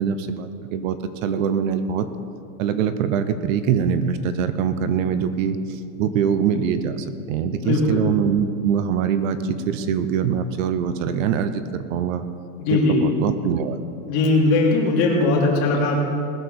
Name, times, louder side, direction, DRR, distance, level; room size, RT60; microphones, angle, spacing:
voice 1, 0.0-2.1 2.6-12.2 12.7-13.8, right 7 dB, 55° right, 11 dB, 0.9 m, -23 dB
voice 2, 7.6-8.0 12.6-13.1 14.1-16.0, left 3 dB, 45° left, -2 dB, 3.1 m, -19 dB
20.0 x 6.7 x 6.9 m, 2.6 s
supercardioid pair, 170°, 46 cm